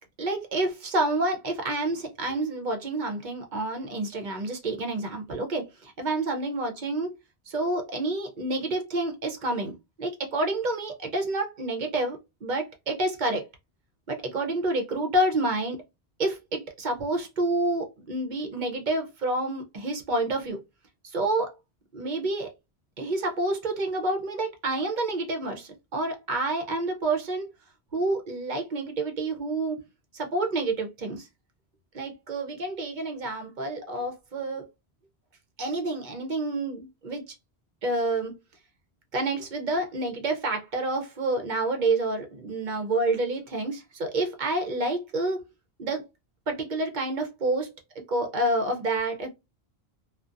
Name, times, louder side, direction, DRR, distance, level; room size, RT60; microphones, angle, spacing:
voice 1, 0.2-7.2 7.5-13.5 14.1-15.8 16.2-20.6 21.0-21.5 21.9-22.5 23.0-27.5 27.9-29.8 30.1-31.3 31.9-34.7 35.6-37.3 37.8-38.3 39.1-45.4 45.8-46.1 46.5-47.7 48.1-49.3, right 2 dB, 55° right, 0.7 m, -28 dB
2.4 x 2.2 x 2.5 m
omnidirectional pair, 1.1 m